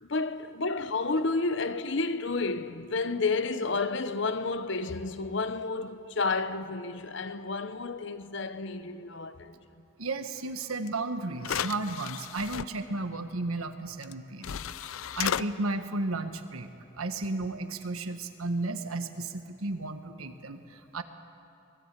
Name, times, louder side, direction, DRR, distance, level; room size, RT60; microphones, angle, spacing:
voice 1, 0.0-9.5, left 3 dB, 60° left, 0.9 m, -31 dB
voice 2, 10.0-14.6 14.8-16.7 17.0-21.0, right 2 dB, 85° right, 1.4 m, -34 dB
sound 1, 10.9-11.0 11.4-12.7 14.0-14.1 14.4-15.4, left 9 dB, 75° left, 0.5 m, -33 dB
23.5 x 19.5 x 8.3 m
head